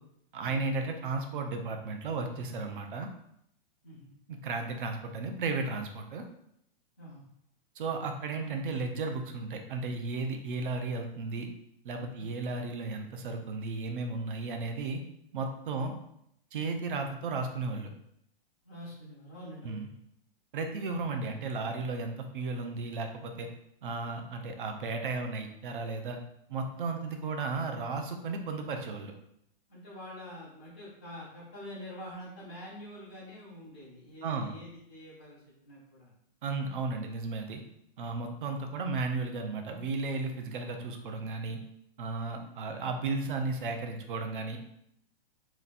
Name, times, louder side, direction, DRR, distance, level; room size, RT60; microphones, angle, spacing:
voice 1, 0.3-3.1 4.3-6.2 7.8-11.5 11.8-15.0 15.3-15.9 16.5-17.9 19.6-19.9 20.5-23.5 23.8-26.2 26.5-29.1 34.2-34.5 36.4-37.6 38.0-41.6 42.0-44.6, right 3 dB, 60° right, 4 dB, 0.7 m, -34 dB
voice 2, 18.6-20.0 27.0-27.1 29.7-36.1 42.4-42.5, equal, 15° left, -10 dB, 0.3 m, -46 dB
3.4 x 3.1 x 4.0 m, 0.74 s
hypercardioid pair, 175°, 30 cm